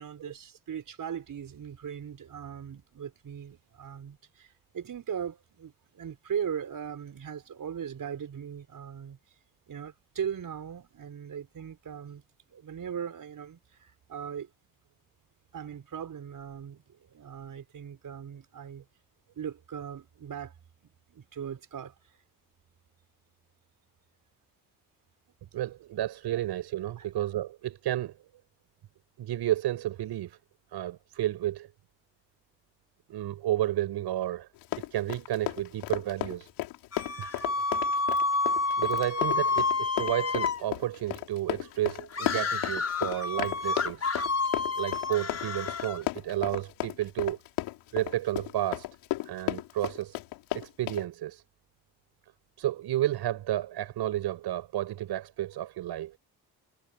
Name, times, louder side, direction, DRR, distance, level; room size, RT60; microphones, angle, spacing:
voice 1, 0.0-9.2 9.7-12.2 12.5-14.5 15.5-18.9 19.4-20.5 20.8-22.2 27.0-27.1, right 8 dB, 55° right, 5.9 m, -39 dB
voice 2, 25.5-28.1 29.2-30.4 30.7-31.7 33.1-34.5 34.7-36.5 38.8-44.1 44.7-47.4 47.9-48.9 49.2-50.2 50.5-51.4 52.6-56.1, right 13 dB, 75° right, 6.8 m, -31 dB
Run, 34.6-51.1, left 17 dB, 90° left, 5.9 m, -34 dB
sound 1, 36.9-40.6 42.1-46.0, left 3 dB, 40° left, 6.1 m, -29 dB
supercardioid pair, 75°, 40 cm